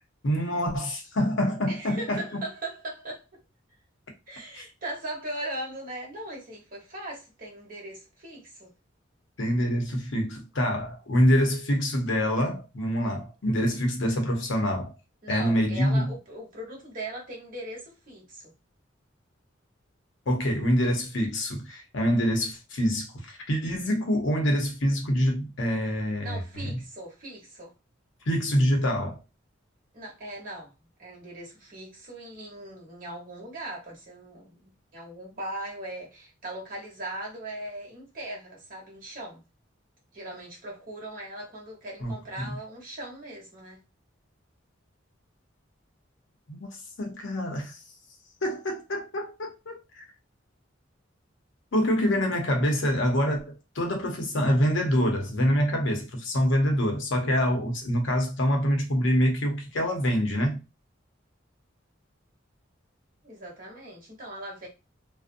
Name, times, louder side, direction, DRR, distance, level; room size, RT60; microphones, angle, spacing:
voice 1, 0.2-2.4 4.5-4.6 9.4-14.9 15.3-16.1 20.3-26.8 28.3-29.2 42.0-42.6 46.5-46.7 47.0-47.8 48.4-50.0 51.7-60.6, equal, 75° left, 0.7 m, -26 dB
voice 2, 1.7-3.3 4.3-8.7 15.2-18.5 26.2-27.7 29.9-30.7 31.0-39.4 40.1-43.8 63.2-64.7, right 1 dB, 45° right, 1.0 m, -39 dB
2.5 x 2.0 x 2.5 m
head